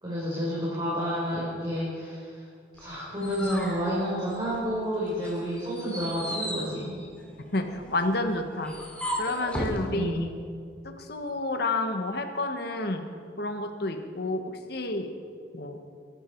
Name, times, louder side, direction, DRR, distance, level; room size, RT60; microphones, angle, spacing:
voice 1, 0.0-2.4 2.8-7.0 9.9-10.3, equal, 25° right, -8 dB, 4.3 m, -30 dB
sound 1, 2.8-4.8 5.2-9.8, equal, 5° left, 2.5 m, -36 dB
voice 2, 7.5-8.7 9.2-10.1 10.8-13.0 13.4-15.1 15.5-15.8, left 2 dB, 60° left, 6 dB, 1.4 m, -30 dB
23.0 x 12.5 x 4.6 m, 2.2 s
head